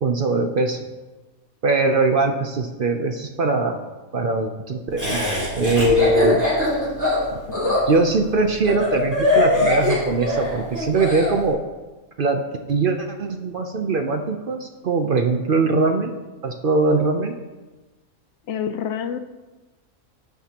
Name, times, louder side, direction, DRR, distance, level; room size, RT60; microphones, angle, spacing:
voice 1, 0.0-0.8 1.6-3.8 4.1-5.2 5.6-6.4 7.9-11.6 12.2-12.4 12.7-16.1 16.4-17.4, right 3 dB, 55° right, 5 dB, 0.6 m, -21 dB
Laughter, 5.0-11.3, left 2 dB, 10° right, 2.8 m, -22 dB
voice 2, 7.5-7.8 18.5-19.2, left 8 dB, 65° left, 10 dB, 0.8 m, -28 dB
16.5 x 5.9 x 2.9 m, 1.2 s
omnidirectional pair, 1.5 m